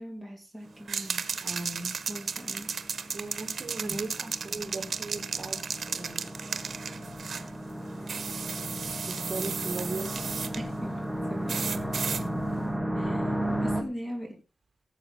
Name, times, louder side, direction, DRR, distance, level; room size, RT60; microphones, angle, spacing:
voice 1, 0.0-1.3 2.1-2.7 10.6-11.0 11.3-11.8 13.0-14.4, equal, 15° left, 1 dB, 3.5 m, -40 dB
sound 1, 0.7-13.8, right 1 dB, ahead, 1.0 m, -35 dB
sound 2, 0.9-7.5 8.1-10.6 11.5-12.2, right 6 dB, 70° right, 1.1 m, -34 dB
voice 2, 1.4-1.9 3.1-5.6 5.9-6.2 9.1-10.1, right 2 dB, 40° right, 5 dB, 2.6 m, -37 dB
17.0 x 7.7 x 4.0 m, 0.29 s
wide cardioid pair, 175°, 0 cm